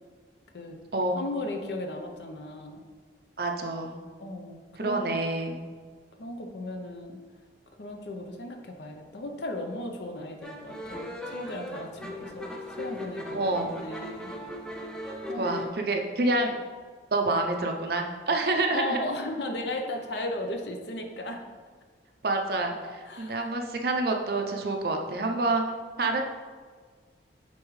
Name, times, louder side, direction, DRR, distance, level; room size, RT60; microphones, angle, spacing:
voice 1, 1.1-2.8 4.2-5.1 6.2-7.2 7.7-14.3 15.3-15.6 18.7-21.4 23.1-23.6 26.0-26.2, left 1 dB, 70° left, 4 dB, 0.7 m, -36 dB
voice 2, 3.4-4.0 4.8-5.6 12.2-12.3 13.3-13.7 15.3-16.6 17.1-19.0 22.2-22.7 23.2-25.6 26.0-26.2, right 2 dB, 55° right, 2 dB, 0.6 m, -27 dB
sound 1, 10.4-15.7, left 1 dB, 5° left, 0.5 m, -38 dB
8.4 x 3.6 x 3.2 m, 1.6 s
head